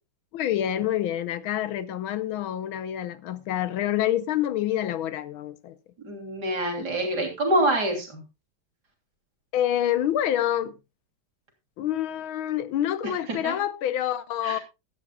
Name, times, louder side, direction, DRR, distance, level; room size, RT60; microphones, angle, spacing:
voice 1, 0.3-5.8 9.5-10.7 11.8-14.6, left 11 dB, 85° left, 1.7 m, -27 dB
voice 2, 6.0-8.2 13.0-13.6 14.4-14.6, right 1 dB, 50° right, 3.8 m, -26 dB
15.5 x 12.5 x 2.4 m
omnidirectional pair, 2.2 m